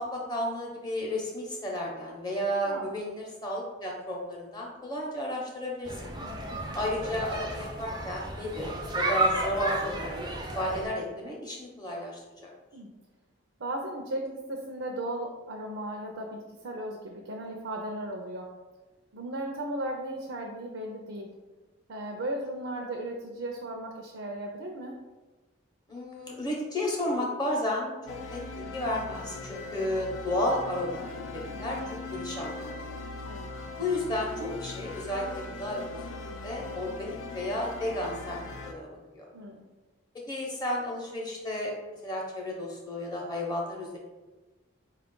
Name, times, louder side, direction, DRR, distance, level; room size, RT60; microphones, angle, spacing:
voice 1, 0.0-6.1 6.7-8.7 8.9-10.1 10.5-12.5 25.9-28.0 28.3-31.0 31.3-31.8 32.1-32.8 33.8-36.1 36.4-38.4 38.7-39.0 40.3-41.7 42.0-44.0, left 1 dB, 20° left, -2 dB, 0.7 m, -32 dB
sound 1, 5.9-10.9, right 1 dB, 20° right, 0.3 m, -32 dB
voice 2, 6.1-6.8 12.7-12.9 13.6-18.5 19.1-21.3 21.9-25.0 33.2-33.6 39.3-39.6, right 1 dB, 75° right, 1 dB, 0.5 m, -36 dB
sound 2, 28.1-38.7, left 3 dB, 85° left, 0.4 m, -40 dB
4.4 x 2.3 x 3.7 m, 1.2 s
head